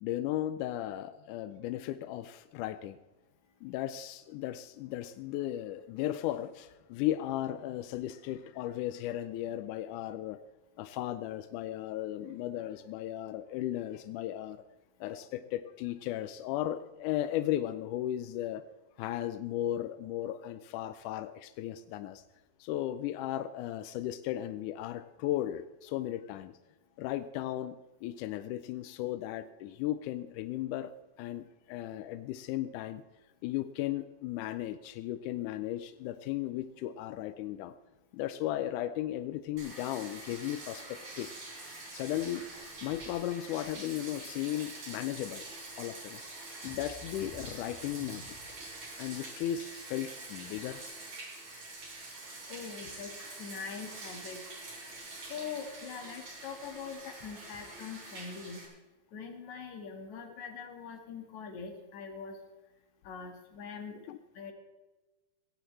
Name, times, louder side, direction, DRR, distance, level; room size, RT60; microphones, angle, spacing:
voice 1, 0.0-3.0 3.6-10.4 10.8-14.6 15.0-18.6 19.0-22.2 22.6-26.6 27.0-33.0 33.4-37.7 38.1-41.3 41.9-42.5 42.8-45.4 45.8-46.2 46.6-48.6 49.0-50.8 64.1-64.2, left 13 dB, 80° left, 11 dB, 1.8 m, -36 dB
Bathtub (filling or washing), 39.6-58.7, right 2 dB, 55° right, 4.7 m, -45 dB
voice 2, 52.5-53.1 53.4-54.4 54.8-58.6 59.1-62.4 63.0-63.9 64.3-64.5, left 6 dB, 60° left, 4 dB, 3.0 m, -43 dB
17.0 x 16.5 x 3.2 m, 1.1 s
omnidirectional pair, 4.1 m